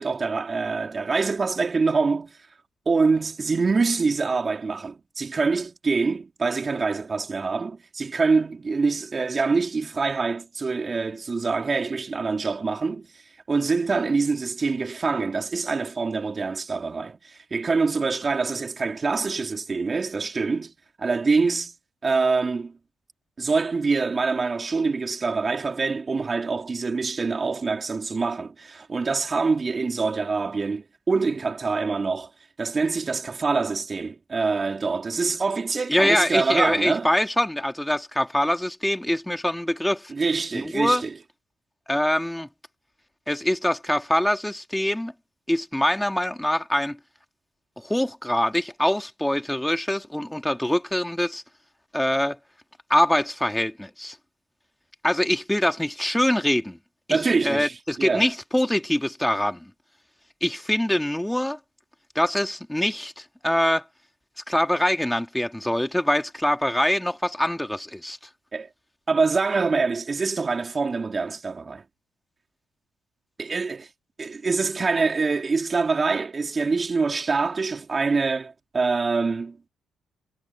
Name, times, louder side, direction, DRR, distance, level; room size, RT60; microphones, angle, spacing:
voice 1, 0.0-2.4 2.9-13.1 13.5-20.7 21.0-21.7 22.0-22.7 23.4-32.3 32.6-37.1 40.1-41.2 57.1-58.3 68.5-68.7 69.1-71.8 73.4-73.9 74.2-79.6, right 4 dB, 30° right, 3.8 m, -25 dB
voice 2, 35.9-40.1 40.7-41.0 41.9-42.5 43.3-45.1 45.5-47.0 47.8-51.4 51.9-52.4 52.9-54.2 55.0-56.8 57.1-59.6 60.4-61.6 62.1-63.8 64.5-68.2, left 1 dB, 5° left, 2.4 m, -24 dB
cardioid pair, 90°, 0 cm